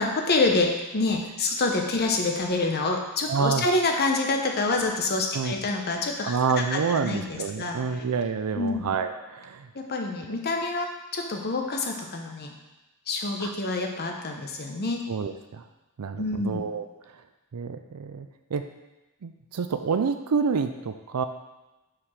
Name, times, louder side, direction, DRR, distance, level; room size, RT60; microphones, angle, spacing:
voice 1, 0.0-8.0 8.5-8.9 9.7-12.5 13.1-15.0 16.2-16.6, left 3 dB, 45° left, 3 dB, 0.9 m, -27 dB
voice 2, 3.3-3.7 5.3-5.5 6.3-9.7 13.4-13.5 15.1-15.6 16.0-16.9 17.5-18.6 19.2-21.2, right 5 dB, 90° right, 7 dB, 0.5 m, -28 dB
5.1 x 4.8 x 5.7 m, 1.0 s
head